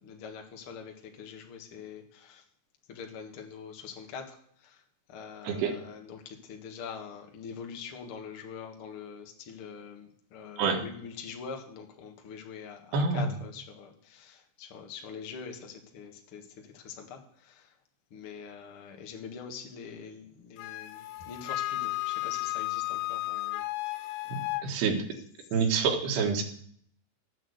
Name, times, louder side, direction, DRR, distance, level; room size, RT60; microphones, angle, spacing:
voice 1, 0.0-2.4 2.9-4.4 4.6-4.8 5.1-16.4 16.7-17.2 17.5-17.6 18.1-23.6 23.9-24.1, left 6 dB, 50° left, 3 dB, 1.8 m, -44 dB
voice 2, 5.4-5.8 10.6-10.8 12.9-13.3 24.3-25.0 25.5-26.4, right 5 dB, 85° right, 3 dB, 3.8 m, -27 dB
Wind instrument woodwind instrument, 20.6-24.7, left 18 dB, 80° left, 2.0 m, -33 dB
13.5 x 8.6 x 8.0 m, 0.63 s
omnidirectional pair, 4.6 m